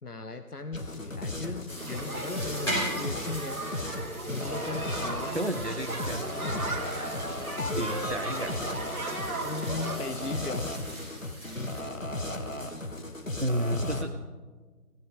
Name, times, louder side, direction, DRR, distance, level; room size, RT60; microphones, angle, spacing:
voice 1, 0.0-3.6 4.3-5.5 6.2-6.7 9.4-10.8, left 3 dB, 75° left, 8 dB, 1.1 m, -38 dB
sound 1, 0.7-14.1, left 1 dB, 55° left, 1.5 m, -35 dB
sound 2, 1.7-11.8, equal, 15° left, 3.6 m, -40 dB
sound 3, 1.8-10.0, right 2 dB, 65° right, 1.8 m, -37 dB
voice 2, 5.3-6.4 6.9-7.4 7.8-8.5 13.4-14.1, equal, 45° right, 7 dB, 0.6 m, -32 dB
23.5 x 15.5 x 3.8 m, 1.4 s
figure-of-eight pair, 175°, 46 cm